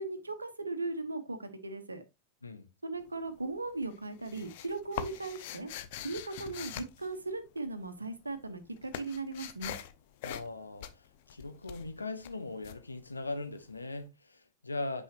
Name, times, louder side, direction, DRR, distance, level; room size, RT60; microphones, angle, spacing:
voice 1, 0.0-2.0 2.8-5.7 6.0-9.7, right 3 dB, 80° right, 1.1 m, -38 dB
sound 1, 3.0-3.5 3.8-7.9 8.1-13.7, left 11 dB, 50° left, 0.7 m, -43 dB
voice 2, 10.2-15.0, left 2 dB, 80° left, 1.1 m, -40 dB
8.6 x 5.5 x 2.9 m
figure-of-eight pair, 90°, 0 cm